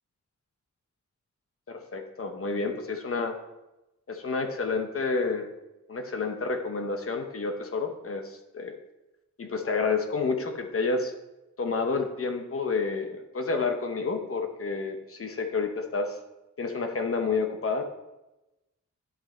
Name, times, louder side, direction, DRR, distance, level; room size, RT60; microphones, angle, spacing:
voice 1, 1.7-3.4 4.1-5.5 5.9-8.8 9.4-11.1 11.6-16.2 16.6-17.8, left 4 dB, 45° left, 5 dB, 0.9 m, -29 dB
10.0 x 5.5 x 4.3 m, 0.98 s
wide cardioid pair, 175°, 30 cm